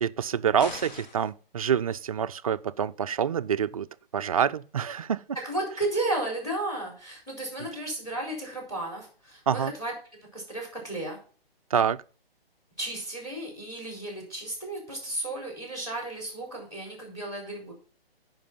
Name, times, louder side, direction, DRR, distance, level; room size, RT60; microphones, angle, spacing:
voice 1, 0.0-3.9 4.1-5.2 9.5-9.7 11.7-12.0, right 8 dB, 35° right, 0.4 m, -26 dB
sound 1, 0.6-1.3, left 4 dB, 45° left, 1.4 m, -40 dB
voice 2, 5.3-9.9 10.3-11.2 12.8-17.7, right 2 dB, 10° left, 4.3 m, -33 dB
10.0 x 5.4 x 5.6 m
hypercardioid pair, 150°, 30 cm